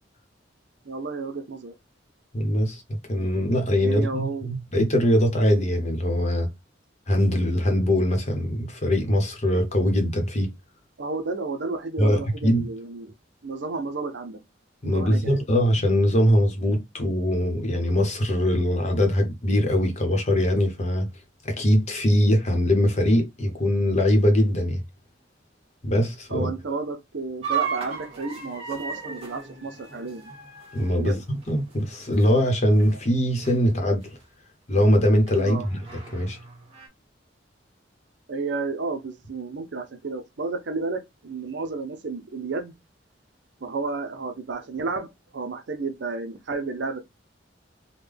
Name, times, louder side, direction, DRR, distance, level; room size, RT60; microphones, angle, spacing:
voice 1, 0.8-1.7 3.8-4.5 11.0-13.1 13.4-14.4 14.8-15.3 26.3-30.3 30.9-31.2 35.4-35.7 38.3-42.8 43.6-47.0, right 3 dB, 65° right, 0.6 m, -32 dB
voice 2, 2.3-6.5 7.1-10.5 12.0-12.6 14.8-21.1 21.4-24.8 25.8-26.5 30.7-34.1 34.7-35.8 36.1-36.4, equal, 35° left, 0.9 m, -22 dB
sound 1, 27.4-32.5 32.8-33.1 33.4-33.6 34.2-34.3 35.3-36.9, right 7 dB, 30° right, 1.4 m, -35 dB
3.6 x 2.2 x 3.3 m
head